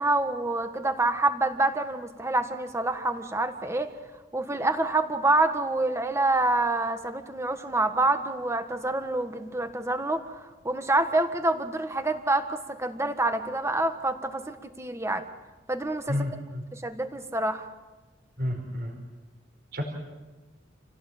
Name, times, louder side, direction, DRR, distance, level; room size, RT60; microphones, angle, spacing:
voice 1, 0.0-3.9 4.3-15.2 15.7-16.1 16.7-17.7, right 2 dB, 15° right, 7 dB, 1.6 m, -27 dB
voice 2, 16.1-16.6 18.4-18.9 19.7-19.8, left 1 dB, 55° right, 2 dB, 4.6 m, -30 dB
28.5 x 17.5 x 8.6 m, 1.2 s
head